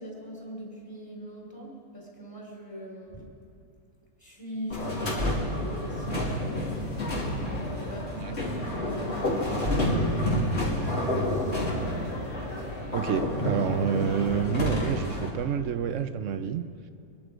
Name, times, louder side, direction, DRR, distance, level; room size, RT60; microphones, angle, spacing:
voice 1, 0.0-3.3 4.2-11.6, equal, 15° left, -2 dB, 3.3 m, -41 dB
sound 1, 4.7-15.3, left 1 dB, 45° left, 3.2 m, -29 dB
voice 2, 12.9-16.7, right 8 dB, 65° right, 11 dB, 0.8 m, -28 dB
24.5 x 11.0 x 5.1 m, 2.6 s
omnidirectional pair, 1.6 m